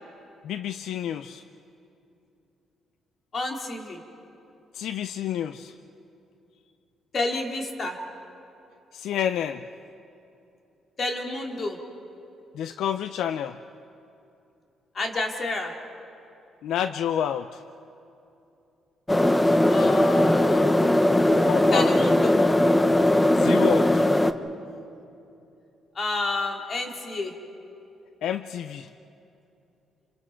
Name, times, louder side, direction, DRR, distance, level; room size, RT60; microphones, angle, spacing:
voice 1, 0.4-1.4 4.7-5.7 8.9-9.6 12.5-13.6 16.6-17.6 21.4-21.9 23.3-24.0 28.2-28.9, left 10 dB, 80° left, 11 dB, 0.5 m, -29 dB
voice 2, 3.3-4.0 7.1-8.0 11.0-11.8 14.9-15.7 19.7-20.8 21.7-22.4 23.2-23.5 25.9-27.3, left 2 dB, 45° left, 2 dB, 2.8 m, -30 dB
sound 1, 19.1-24.3, left 1 dB, 10° left, 0.8 m, -19 dB
28.0 x 26.0 x 4.6 m, 2.8 s
cardioid pair, 90°, 0 cm